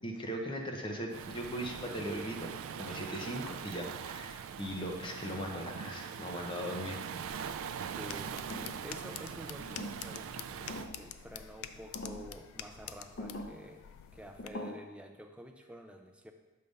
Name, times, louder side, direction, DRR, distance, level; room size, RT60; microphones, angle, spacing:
voice 1, 0.0-2.5 2.8-7.5, equal, 25° left, 1 dB, 0.8 m, -39 dB
Waves surf, 1.1-10.9, right 7 dB, 75° right, 0.3 m, -42 dB
sound 1, 7.2-14.5, left 9 dB, 80° left, 0.3 m, -48 dB
voice 2, 7.9-8.5 8.8-13.9 14.1-16.3, equal, 5° right, 4 dB, 0.4 m, -49 dB
sound 2, 8.5-8.9 9.6-10.2 10.7-11.1 11.9-12.3 13.2-13.6 14.4-14.7, left 1 dB, 60° left, 0.7 m, -43 dB
6.6 x 3.4 x 5.2 m, 1.1 s
head